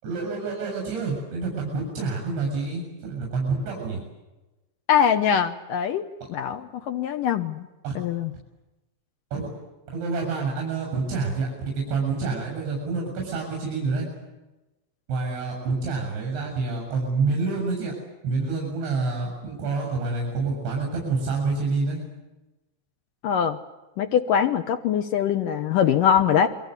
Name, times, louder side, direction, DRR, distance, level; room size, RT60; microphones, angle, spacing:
voice 1, 0.0-4.0 7.8-7.9 9.3-9.5 9.9-14.1 15.1-17.9 18.2-22.0, right 4 dB, 70° right, 0 dB, 10.0 m, -27 dB
voice 2, 4.9-7.7 8.0-8.3 23.2-23.6 24.0-26.5, left 8 dB, 75° left, 6 dB, 2.0 m, -22 dB
29.0 x 23.5 x 8.2 m, 1.0 s
omnidirectional pair, 5.3 m